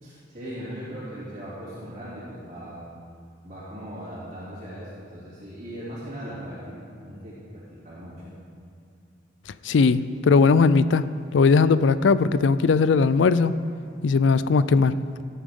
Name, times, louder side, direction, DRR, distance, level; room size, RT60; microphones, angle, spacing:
voice 1, 0.0-2.9 3.4-8.3, equal, 40° right, -13 dB, 3.0 m, -39 dB
voice 2, 9.6-11.0 11.3-13.5 14.0-14.9, left 4 dB, 75° left, 15 dB, 0.4 m, -19 dB
17.5 x 8.5 x 3.7 m, 2.4 s
head